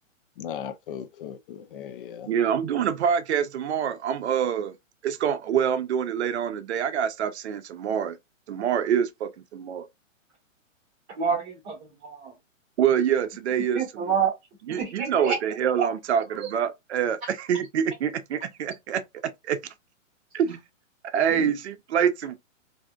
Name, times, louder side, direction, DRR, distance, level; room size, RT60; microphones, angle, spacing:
voice 1, 0.4-2.3 21.4-21.5, left 9 dB, 45° left, 0.4 m, -37 dB
voice 2, 2.3-4.8 5.0-8.2 8.5-9.9 12.8-14.2 14.7-19.6 20.3-20.6 21.0-22.4, right 8 dB, 60° right, 0.5 m, -26 dB
voice 3, 11.2-12.3 13.7-14.3 14.7-15.3 15.8-15.9 16.4-16.5, right 7 dB, 25° right, 0.9 m, -27 dB
3.3 x 2.6 x 2.3 m
hypercardioid pair, 135°, 39 cm